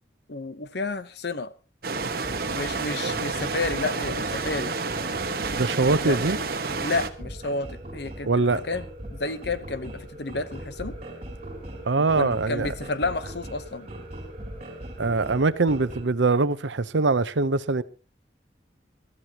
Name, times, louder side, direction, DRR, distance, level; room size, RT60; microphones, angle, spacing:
voice 1, 0.3-1.5 2.5-4.7 6.0-6.2 6.8-8.8 9.1-11.0 12.1-13.9, left 3 dB, 60° left, 0.9 m, -31 dB
sound 1, 1.8-7.1, right 4 dB, 50° right, 1.2 m, -30 dB
sound 2, 1.9-16.0, right 1 dB, 35° right, 4.8 m, -40 dB
voice 2, 5.5-6.4 8.2-8.6 11.9-12.7 15.0-17.8, right 3 dB, 80° right, 0.8 m, -23 dB
23.0 x 13.5 x 2.9 m
head